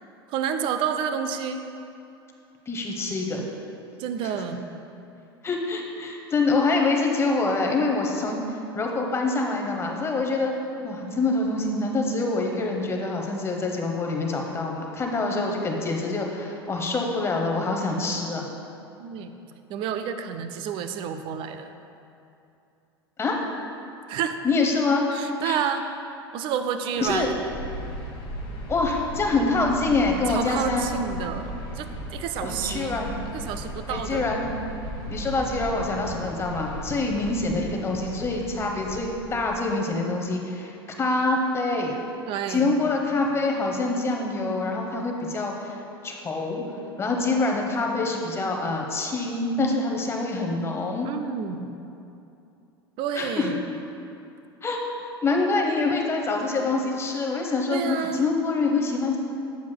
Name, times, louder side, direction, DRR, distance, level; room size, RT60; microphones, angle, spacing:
voice 1, 0.3-1.7 4.0-4.6 19.0-19.3 19.7-21.7 24.1-24.4 25.1-25.8 26.3-27.4 30.3-33.0 33.3-34.3 42.3-42.7 51.0-51.7 53.0-53.6 57.7-58.3, right 8 dB, 40° right, 8 dB, 0.5 m, -29 dB
voice 2, 2.7-3.4 4.2-4.3 5.4-8.4 8.7-10.6 10.8-18.4 23.2-23.4 24.4-25.0 25.4-25.6 27.0-27.3 28.7-31.0 32.4-33.1 33.9-34.5 35.1-41.9 42.5-45.8 46.0-46.6 47.0-51.1 53.1-53.5 54.6-54.9 55.2-59.2, left 3 dB, 20° left, 1 dB, 0.9 m, -25 dB
sound 1, 27.0-39.6, equal, 45° left, 1.2 m, -37 dB
9.2 x 7.2 x 2.2 m, 2.7 s
figure-of-eight pair, 80°, 13 cm